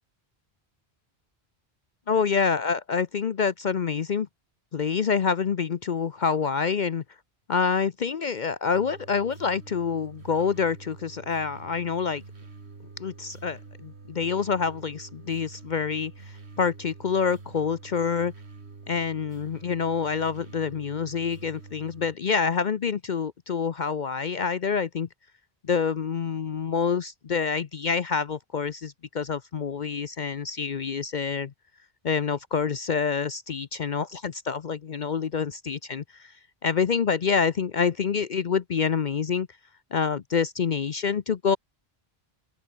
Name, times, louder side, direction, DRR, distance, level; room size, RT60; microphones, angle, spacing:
voice 1, 2.1-4.3 4.7-7.0 7.5-12.2 13.0-18.3 18.9-25.1 25.6-31.5 32.0-36.3 36.6-39.5 39.9-41.6, left 6 dB, 50° left, 0.8 m, -27 dB
sound 1, 8.7-22.2, right 4 dB, 90° right, 2.6 m, -46 dB
open air
omnidirectional pair, 1.1 m